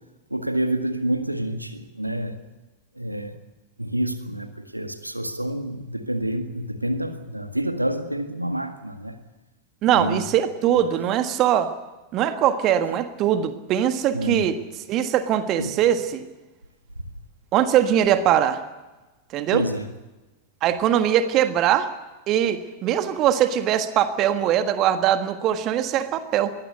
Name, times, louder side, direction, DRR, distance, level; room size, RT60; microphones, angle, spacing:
voice 1, 0.3-2.3 3.0-3.3 3.8-9.1 9.9-10.2 14.1-14.4 15.0-15.1 15.6-15.7 19.5-19.9, right 1 dB, 85° right, 1.8 m, -28 dB
voice 2, 9.8-11.7 12.1-14.6 14.9-16.3 17.5-18.6 19.3-19.6 20.6-21.9 22.3-26.5, right 10 dB, 35° right, 1.5 m, -21 dB
22.5 x 17.0 x 8.2 m
figure-of-eight pair, 90°, 0 cm